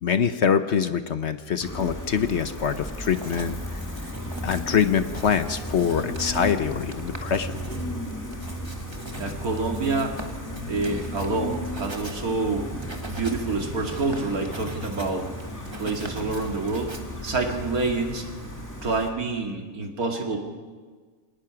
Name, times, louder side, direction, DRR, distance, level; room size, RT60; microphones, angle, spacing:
voice 1, 0.0-4.1 4.4-7.6, left 7 dB, 55° left, 10 dB, 1.0 m, -24 dB
Gull seagull, 1.6-19.1, equal, 10° left, 2.2 m, -35 dB
Writing, 2.6-18.0, right 1 dB, 20° right, 1.6 m, -43 dB
sound 1, 4.1-18.8, left 1 dB, 40° right, 3.1 m, -43 dB
voice 2, 9.2-10.1 10.7-12.7 13.1-15.3 15.8-16.9 17.2-18.3 18.8-20.4, right 3 dB, 80° right, 2 dB, 2.6 m, -27 dB
26.5 x 18.5 x 5.9 m, 1.5 s
omnidirectional pair, 1.5 m